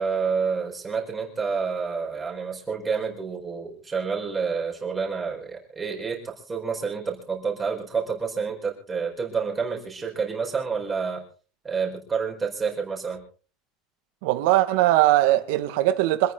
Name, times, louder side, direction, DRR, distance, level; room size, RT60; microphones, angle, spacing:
voice 1, 0.0-11.2 11.6-13.2, right 5 dB, 15° right, 4.7 m, -29 dB
voice 2, 14.2-16.3, right 15 dB, 75° right, 2.1 m, -20 dB
26.5 x 9.4 x 4.1 m
cardioid pair, 165°, 0 cm